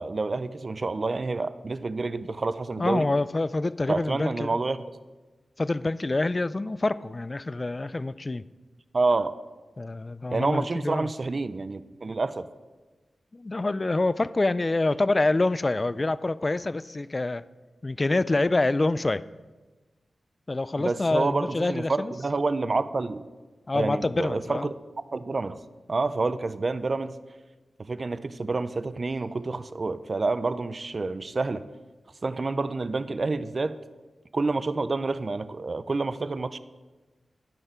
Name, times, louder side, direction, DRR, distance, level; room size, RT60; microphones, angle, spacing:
voice 1, 0.0-3.1 3.9-4.8 8.9-9.3 10.3-12.5 20.8-23.3 23.7-24.7 25.1-25.6 25.9-27.2 27.8-31.6 32.2-33.8 34.3-36.6, right 3 dB, 50° right, 14 dB, 0.4 m, -28 dB
voice 2, 2.8-4.6 5.6-8.4 9.8-11.1 13.3-17.4 17.8-19.2 20.5-22.1 23.7-24.7, left 2 dB, 35° left, 16 dB, 0.3 m, -26 dB
13.0 x 5.7 x 4.4 m, 1.2 s
cardioid pair, 60°, 0 cm